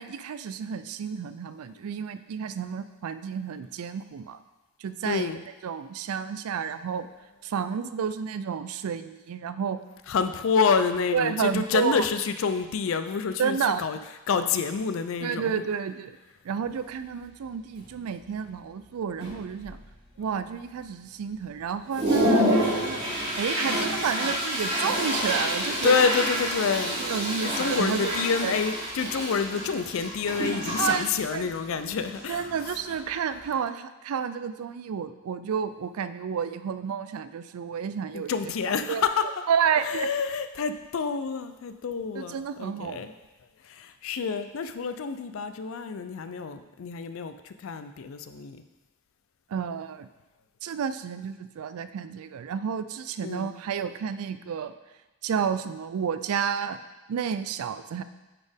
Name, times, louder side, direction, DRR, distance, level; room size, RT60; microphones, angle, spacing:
voice 1, 0.0-4.4 4.8-7.1 7.4-9.8 11.1-12.1 13.4-13.8 15.2-16.2 16.4-19.8 20.2-23.0 23.4-26.0 27.0-28.1 28.4-28.5 30.8-31.4 32.3-38.3 38.9-39.0 39.5-40.1 42.2-43.1 49.5-50.1 50.6-54.7 55.2-56.8 57.1-58.0, right 7 dB, 75° right, 12 dB, 0.3 m, -30 dB
voice 2, 5.0-5.4 10.1-14.0 14.3-15.6 25.8-27.0 27.4-32.5 38.1-39.2 39.8-43.1 43.6-48.6 53.2-53.5, left 5 dB, 60° left, 10 dB, 0.4 m, -28 dB
Toilet flush, 16.6-16.7 17.2-17.5 17.8-18.3 18.8-18.9 19.2-20.0 20.4-20.5 21.1-21.2 21.6-33.5, equal, 45° right, 2.1 m, -28 dB
8.8 x 4.2 x 3.5 m, 1.1 s
head